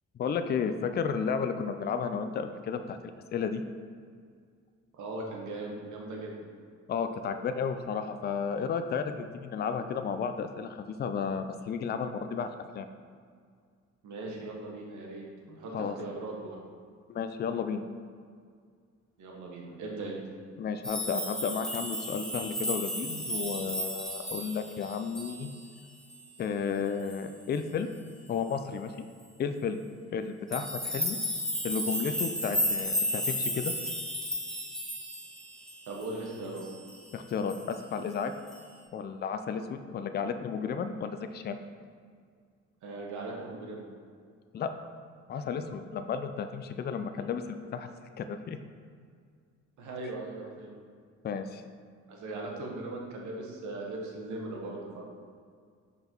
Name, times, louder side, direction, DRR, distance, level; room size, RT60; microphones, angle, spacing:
voice 1, 0.2-3.0 3.3-3.6 6.9-12.9 15.7-15.9 17.1-17.8 20.6-25.5 26.4-27.9 28.3-29.1 29.4-29.8 30.1-31.2 31.6-33.7 37.1-38.3 38.9-41.6 44.5-44.7 45.3-47.4 47.7-48.6 51.2-51.6, left 6 dB, 35° left, 9 dB, 0.4 m, -33 dB
voice 2, 5.0-6.3 14.0-16.6 19.2-20.2 35.9-36.6 42.8-43.8 49.8-50.8 52.1-55.1, right 2 dB, 75° right, -1 dB, 1.3 m, -39 dB
sound 1, 20.8-25.8 26.1-26.4 27.1-27.3 30.5-36.2 36.6-37.1 37.5-37.9 38.5-38.6, equal, ahead, 0.9 m, -34 dB
5.3 x 4.0 x 4.5 m, 2.1 s
cardioid pair, 90°, 30 cm